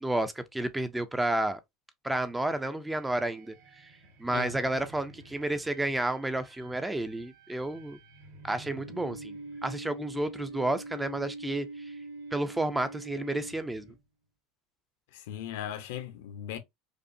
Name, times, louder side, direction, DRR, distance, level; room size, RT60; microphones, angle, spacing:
voice 1, 0.0-1.6 2.0-3.5 4.2-8.0 8.4-9.4 9.6-11.7 12.3-13.9, right 1 dB, 5° right, 0.4 m, -31 dB
sound 1, 2.9-14.0, right 2 dB, 90° right, 2.3 m, -46 dB
voice 2, 15.1-16.6, left 11 dB, 85° left, 0.8 m, -38 dB
5.1 x 2.1 x 2.6 m
supercardioid pair, 140°, 0 cm